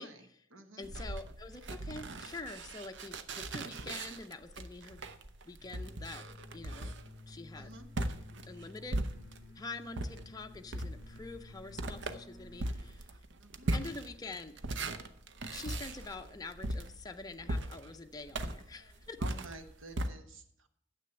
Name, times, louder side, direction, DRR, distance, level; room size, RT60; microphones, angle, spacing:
voice 1, 0.0-0.4 0.8-5.0 5.4-6.2 6.5-6.9 7.3-7.7 8.5-9.1 9.6-13.1 13.7-14.6 15.5-19.2, left 3 dB, 20° left, 5 dB, 0.6 m, -46 dB
voice 2, 0.5-0.9 7.5-7.9 13.4-13.7 19.2-20.7, right 2 dB, 80° right, 7 dB, 1.2 m, -50 dB
sound 1, 0.8-9.6 9.9-20.1, right 1 dB, 60° right, 0.7 m, -39 dB
sound 2, 5.6-13.0, left 2 dB, 15° right, 2.0 m, -53 dB
9.6 x 7.7 x 7.0 m, 0.73 s
head